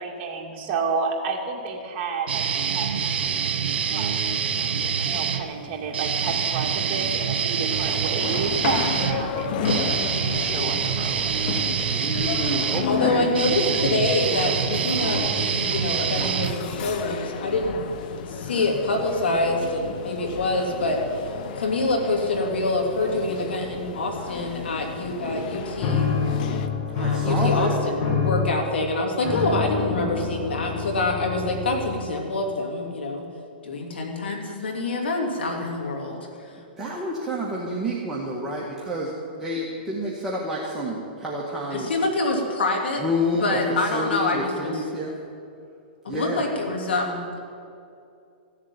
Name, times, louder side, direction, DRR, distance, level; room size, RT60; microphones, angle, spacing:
voice 1, 0.0-2.9 3.8-4.3 4.6-11.3, right 5 dB, 40° right, 0 dB, 2.4 m, -31 dB
sound 1, 2.3-5.4 5.9-17.1, right 7 dB, 75° right, 1.4 m, -26 dB
sound 2, 7.7-26.7, left 6 dB, 55° left, 1.0 m, -33 dB
voice 2, 11.9-13.3 27.0-27.7 36.8-39.1 39.4-41.9 43.0-43.6 43.9-45.1 46.1-46.5, equal, 5° right, -6 dB, 1.9 m, -29 dB
voice 3, 12.9-17.8 18.3-21.0 21.5-26.1 27.0-33.2 33.6-36.5 39.4-39.6 41.7-43.0 43.4-44.8 46.0-47.4, left 2 dB, 85° left, 1 dB, 3.1 m, -26 dB
sound 3, 25.8-32.3, left 5 dB, 35° left, 2.3 m, -27 dB
15.5 x 7.5 x 9.1 m, 2.5 s
hypercardioid pair, 140°, 6 cm